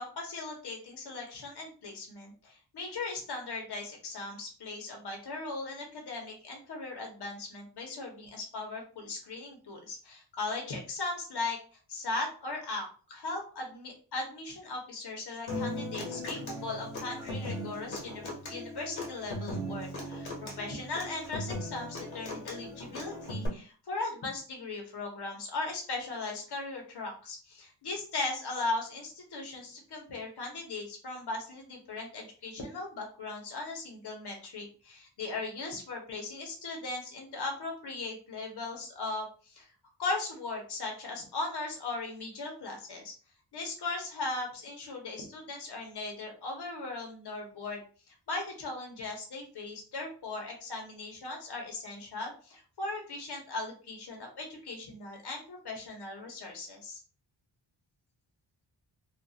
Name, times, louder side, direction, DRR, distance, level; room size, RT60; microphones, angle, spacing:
voice 1, 0.0-11.6 11.9-39.7 40.0-43.1 43.5-47.8 48.3-57.0, left 3 dB, 55° left, 1 dB, 1.0 m, -38 dB
Human voice / Acoustic guitar, 15.5-23.5, left 1 dB, 80° left, 1.1 m, -38 dB
2.5 x 2.4 x 2.7 m, 0.39 s
cardioid pair, 60°, 47 cm